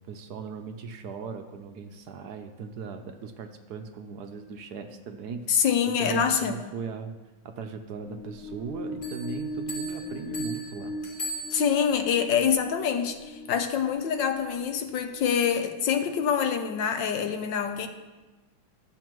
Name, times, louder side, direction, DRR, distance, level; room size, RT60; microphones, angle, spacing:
voice 1, 0.1-5.5 6.0-7.2 7.4-10.9, right 5 dB, 70° right, 6 dB, 1.0 m, -38 dB
voice 2, 5.5-6.6 11.5-17.9, left 7 dB, 70° left, 7 dB, 1.4 m, -25 dB
sound 1, 8.0-15.6, equal, 90° left, 1.5 m, -39 dB
Bell, 9.0-12.1, equal, 25° left, 2.1 m, -39 dB
12.5 x 8.0 x 3.0 m, 1.2 s
omnidirectional pair, 2.2 m